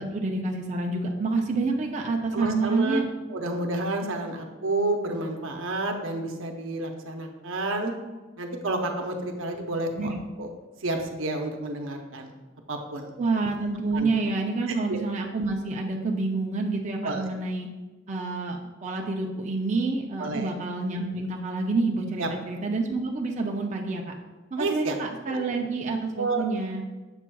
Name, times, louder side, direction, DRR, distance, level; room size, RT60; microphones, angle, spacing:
voice 1, 0.0-3.1 10.0-10.2 13.2-17.7 18.1-24.1 24.5-26.8, right 3 dB, 35° right, 0 dB, 0.5 m, -28 dB
voice 2, 2.3-3.0 3.3-7.9 8.4-10.1 10.4-10.5 10.8-12.3 12.7-13.1 13.9-14.1 14.7-15.0 17.0-17.3 20.2-20.5 22.2-22.3 24.6-25.0 25.3-25.4 26.2-26.4, right 2 dB, 80° right, 3 dB, 0.7 m, -30 dB
6.9 x 6.0 x 2.3 m, 1.2 s
head